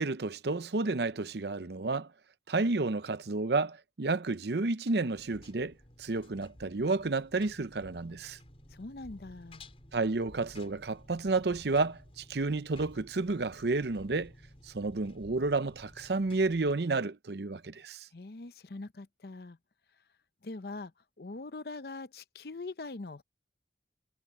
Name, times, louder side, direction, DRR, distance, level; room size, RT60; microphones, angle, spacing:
voice 1, 0.0-2.1 2.5-8.4 9.9-14.3 14.7-18.1, right 3 dB, 70° right, 0.7 m, -31 dB
Engine, 5.1-16.7, left 1 dB, 35° left, 5.7 m, -54 dB
voice 2, 8.7-9.7 18.1-19.6 20.4-23.2, left 3 dB, 60° left, 0.7 m, -43 dB
head